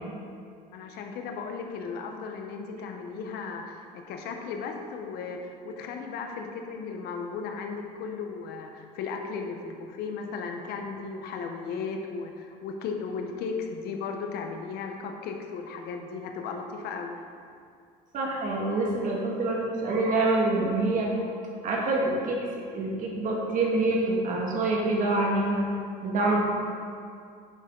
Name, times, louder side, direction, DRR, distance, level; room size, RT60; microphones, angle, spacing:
voice 1, 0.7-17.1, left 5 dB, 70° left, 3 dB, 1.1 m, -36 dB
voice 2, 18.1-21.1 21.6-25.7 26.0-26.4, right 2 dB, 50° right, -2 dB, 1.9 m, -26 dB
9.8 x 6.6 x 3.9 m, 2.3 s
cardioid pair, 125°, 17 cm